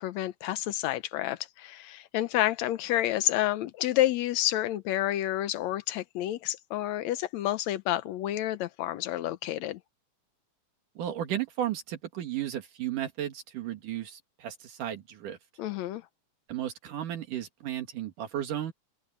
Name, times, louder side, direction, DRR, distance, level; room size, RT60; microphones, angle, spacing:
voice 1, 0.0-9.8 15.6-16.0, left 14 dB, 70° left, 1.9 m, -29 dB
voice 2, 11.0-15.4 16.5-18.7, right 11 dB, 80° right, 3.3 m, -34 dB
open air
omnidirectional pair, 3.7 m